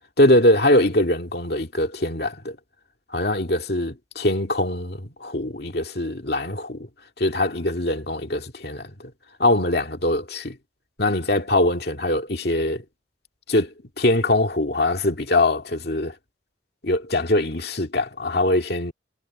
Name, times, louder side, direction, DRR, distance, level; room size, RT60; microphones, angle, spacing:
voice 1, 0.2-2.6 3.1-6.9 7.2-9.1 9.4-10.6 11.0-12.8 13.5-16.1 16.8-18.9, left 1 dB, 55° left, 2.2 m, -22 dB
head